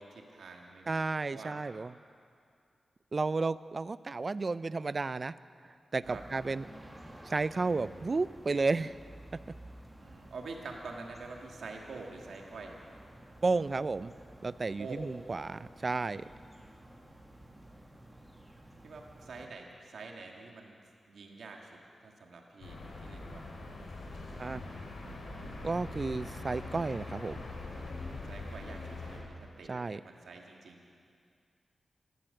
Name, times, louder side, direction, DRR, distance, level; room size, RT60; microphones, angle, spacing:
voice 1, 0.0-1.6 6.1-6.2 10.0-12.8 14.8-15.0 18.8-20.8 21.1-23.5 28.2-30.9, right 3 dB, 90° right, 1 dB, 1.7 m, -47 dB
voice 2, 0.9-1.9 3.1-5.3 5.9-6.6 7.3-8.9 13.4-14.1 14.4-16.2 24.4-24.6 25.6-27.4 29.7-30.0, right 3 dB, 40° right, 17 dB, 0.4 m, -32 dB
sound 1, 6.0-19.5, right 1 dB, 10° right, 1.8 m, -53 dB
sound 2, 22.6-29.2, left 2 dB, 80° left, 3.1 m, -42 dB
15.0 x 13.5 x 6.5 m, 2.3 s
wide cardioid pair, 100°, 0 cm